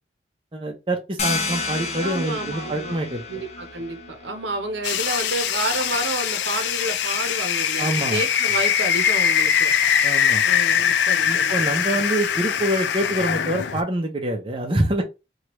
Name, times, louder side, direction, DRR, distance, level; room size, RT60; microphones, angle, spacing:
voice 1, 0.5-3.2 7.8-8.2 10.0-10.4 11.2-15.0, right 1 dB, 30° right, 0.5 m, -25 dB
sound 1, 1.2-6.6, left 4 dB, 35° left, 0.6 m, -32 dB
voice 2, 2.0-3.0 3.3-9.7 10.4-12.0, right 2 dB, 85° right, 0.7 m, -30 dB
sound 2, 4.8-13.8, left 8 dB, 80° left, 0.3 m, -22 dB
3.0 x 2.3 x 2.9 m
head